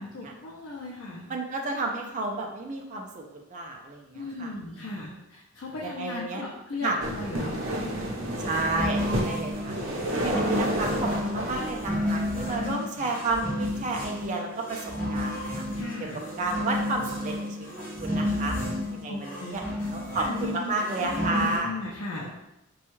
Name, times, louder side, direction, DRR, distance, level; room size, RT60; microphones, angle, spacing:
voice 1, 0.0-1.3 4.1-7.6 12.5-13.1 15.7-16.2 19.1-22.3, left 3 dB, 65° left, -4 dB, 0.5 m, -37 dB
voice 2, 1.3-4.5 4.8-4.9 5.8-6.4 6.8-7.0 8.4-9.7 10.1-15.6 16.4-18.6 18.9-19.6 19.9-21.8, right 2 dB, 35° right, 1 dB, 0.4 m, -31 dB
sound 1, 7.0-12.7, right 1 dB, 80° right, 0.7 m, -31 dB
sound 2, 8.3-21.6, left 1 dB, 10° left, 1.4 m, -32 dB
4.2 x 2.3 x 3.0 m, 0.89 s
head